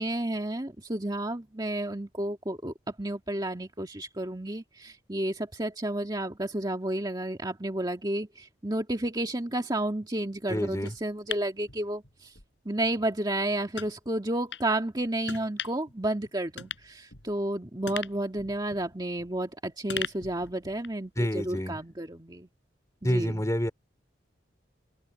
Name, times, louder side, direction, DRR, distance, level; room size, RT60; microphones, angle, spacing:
voice 1, 0.0-12.4 12.7-22.5 23.0-23.4, right 1 dB, 20° right, 2.0 m, -31 dB
voice 2, 10.5-10.9 21.2-21.7 23.0-23.7, equal, 15° left, 3.7 m, -28 dB
sound 1, 10.9-12.5 12.8-13.0 13.7-13.9 14.5-14.7 15.3-15.9 16.2-16.3 16.6-17.5 17.9-19.5 19.9-21.1 21.4-21.5, left 7 dB, 75° left, 5.4 m, -40 dB
open air
head